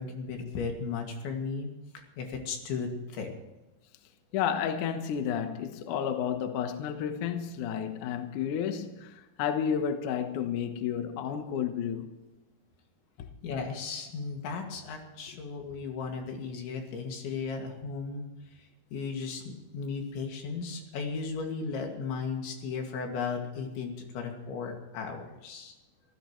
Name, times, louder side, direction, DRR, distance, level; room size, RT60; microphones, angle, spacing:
voice 1, 0.0-1.7 2.2-3.3 13.4-18.3 18.9-25.7, left 5 dB, 85° left, 4.7 m, -35 dB
voice 2, 4.3-12.1, left 8 dB, 65° left, 2.0 m, -31 dB
25.5 x 16.0 x 3.2 m
omnidirectional pair, 5.1 m